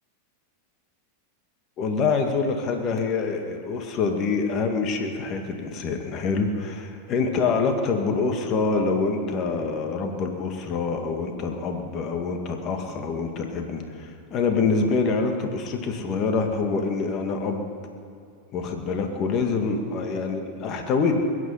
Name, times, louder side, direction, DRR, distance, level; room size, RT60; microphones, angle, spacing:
voice 1, 1.8-17.6 18.5-21.1, left 4 dB, 40° left, 4 dB, 1.9 m, -26 dB
21.5 x 9.6 x 5.7 m, 2.5 s
hypercardioid pair, 105°, 0 cm